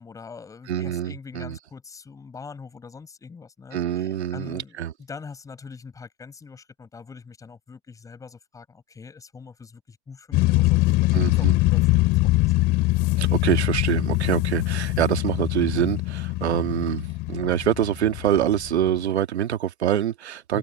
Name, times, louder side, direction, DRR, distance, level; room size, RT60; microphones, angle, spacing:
voice 1, 0.0-12.6 20.5-20.6, left 5 dB, 10° left, 7.9 m, -43 dB
voice 2, 0.7-1.6 3.7-4.9 11.1-11.5 13.2-20.6, right 10 dB, 75° right, 1.9 m, -25 dB
sound 1, 10.3-19.0, left 20 dB, 30° left, 2.7 m, -23 dB
hypercardioid pair, 150°, 33 cm